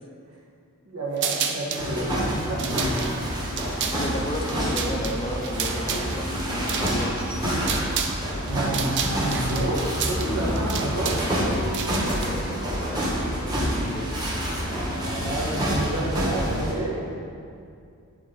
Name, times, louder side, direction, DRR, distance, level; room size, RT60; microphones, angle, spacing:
voice 1, 0.8-2.9 8.4-11.2 15.0-17.0, right 1 dB, 75° right, -5 dB, 1.6 m, -29 dB
sound 1, 1.2-1.9 2.4-8.2 8.5-12.3, right 7 dB, 55° right, 0.5 m, -31 dB
sound 2, 1.8-16.7, equal, 20° right, 1.2 m, -27 dB
voice 2, 3.9-6.3 6.6-7.3 12.0-14.1, left 1 dB, 25° left, 2 dB, 0.5 m, -34 dB
10.5 x 3.6 x 3.9 m, 2.4 s
head